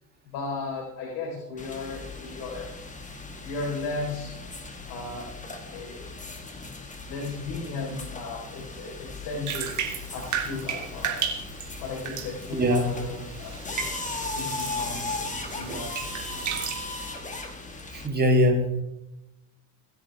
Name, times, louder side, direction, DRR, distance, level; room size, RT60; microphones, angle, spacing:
voice 1, 0.2-2.7 3.3-4.3 4.9-5.4 5.7-6.1 6.5-9.7 10.1-11.2 11.8-16.3, left 3 dB, 70° left, -3 dB, 4.6 m, -36 dB
sound 1, 1.6-18.1, left 3 dB, 20° left, 2.3 m, -37 dB
Bathtub (filling or washing), 9.5-16.7, right 7 dB, 45° right, 3.1 m, -34 dB
voice 2, 12.6-12.9 17.9-18.8, equal, 25° right, 2 dB, 3.2 m, -22 dB
25.5 x 10.0 x 3.6 m, 0.94 s
cardioid pair, 110°, 40 cm